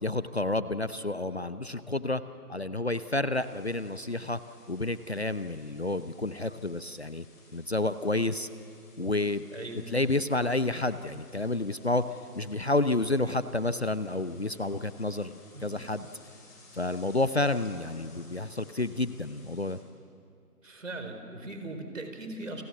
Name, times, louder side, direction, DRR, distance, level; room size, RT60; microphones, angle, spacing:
voice 1, 0.0-2.2 2.5-4.4 4.7-7.2 7.5-8.5 9.0-9.5 9.9-12.0 12.3-16.1 16.7-19.8, left 2 dB, 45° left, 13 dB, 0.7 m, -30 dB
sound 1, 3.3-19.7, left 2 dB, 10° left, 3.0 m, -57 dB
voice 2, 9.5-9.8 15.5-15.9 20.6-22.6, right 2 dB, 55° right, 6 dB, 4.4 m, -39 dB
29.5 x 26.5 x 7.4 m, 2.3 s
figure-of-eight pair, 175°, 47 cm